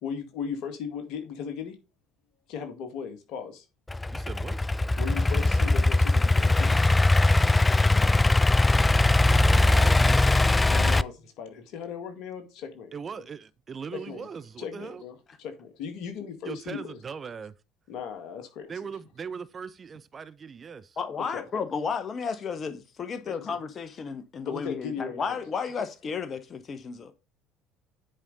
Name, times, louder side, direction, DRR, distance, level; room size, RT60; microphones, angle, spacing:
voice 1, 0.0-1.8 2.5-3.6 5.0-6.8 10.7-12.9 13.9-14.3 14.6-17.0 17.9-18.7 21.3-21.4 23.3-23.6 24.4-25.5 25.8-25.9, left 6 dB, 60° left, 1.9 m, -37 dB
Idling / Accelerating revving vroom, 3.9-11.0, left 2 dB, 15° left, 0.3 m, -21 dB
voice 2, 4.1-4.7 9.5-10.5 12.9-15.0 16.4-17.5 18.7-21.0, right 6 dB, 35° right, 0.6 m, -39 dB
voice 3, 8.3-8.7 21.0-27.1, left 5 dB, 40° left, 1.0 m, -33 dB
9.9 x 5.0 x 4.0 m
figure-of-eight pair, 60°, 0 cm